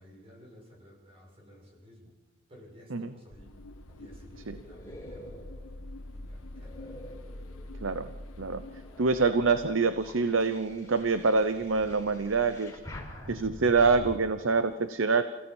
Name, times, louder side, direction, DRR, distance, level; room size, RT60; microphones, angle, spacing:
voice 1, 0.0-2.1 2.5-3.5 3.9-5.3 6.1-7.0, equal, 25° right, -2 dB, 7.0 m, -54 dB
sound 1, 3.3-10.7, left 1 dB, 80° left, 1.4 m, -46 dB
sound 2, 3.8-8.0 8.5-14.2, left 1 dB, 15° left, 4.8 m, -47 dB
voice 2, 9.0-12.7 13.3-15.2, right 4 dB, 65° right, 11 dB, 0.8 m, -25 dB
28.0 x 16.0 x 7.2 m, 1.4 s
head